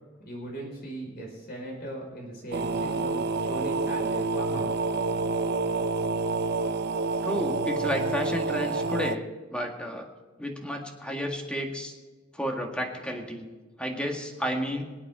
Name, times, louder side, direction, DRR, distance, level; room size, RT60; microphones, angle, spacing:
voice 1, 0.2-4.7, right 1 dB, 55° left, 0 dB, 5.2 m, -38 dB
sound 1, 2.5-9.2, right 3 dB, 55° right, 0.6 m, -28 dB
voice 2, 7.2-10.1 10.4-11.9 12.3-13.5 13.8-14.8, equal, 5° left, 2 dB, 1.9 m, -31 dB
25.5 x 8.6 x 3.8 m, 1.3 s
head